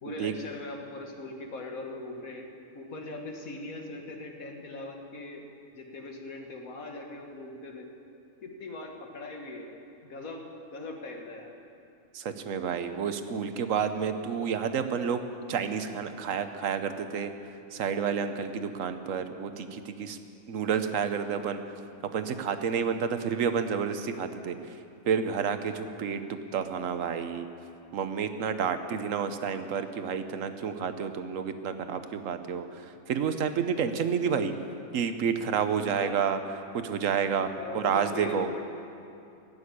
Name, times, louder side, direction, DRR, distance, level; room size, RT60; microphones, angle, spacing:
voice 1, 0.0-2.4 2.7-5.4 5.7-7.9 8.4-10.4 10.7-11.5 28.7-29.1 35.9-36.4 37.6-38.6, left 2 dB, 90° left, 2 dB, 1.9 m, -40 dB
voice 2, 12.1-17.3 17.7-20.2 20.5-21.6 22.1-24.7 25.1-27.5 27.9-34.5 34.9-37.5 37.7-38.5, right 7 dB, 75° right, 9 dB, 1.2 m, -30 dB
16.5 x 7.0 x 9.6 m, 2.6 s
omnidirectional pair, 1.4 m